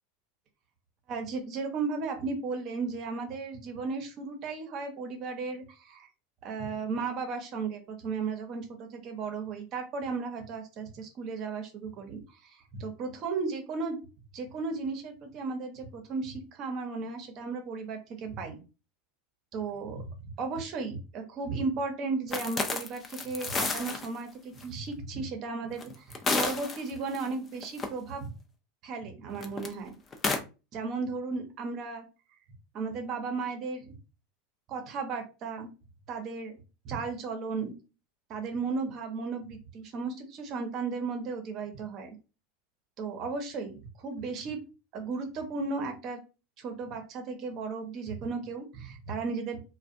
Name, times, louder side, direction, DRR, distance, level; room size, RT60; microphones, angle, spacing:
voice 1, 1.1-6.1 6.4-14.0 14.3-18.6 19.5-28.2 28.8-30.0 30.7-32.0 32.7-33.9 34.7-35.7 36.1-36.6 36.8-37.7 38.3-42.1 43.0-44.6 44.9-46.2 46.6-49.6, right 4 dB, 50° right, 5 dB, 0.8 m, -35 dB
sound 1, 22.3-24.1 24.6-24.7 25.8-27.2 27.6-27.9 29.3-29.7 30.1-30.4, left 3 dB, 30° left, 0.5 m, -30 dB
2.4 x 2.2 x 2.6 m, 0.31 s
hypercardioid pair, 90°, 0 cm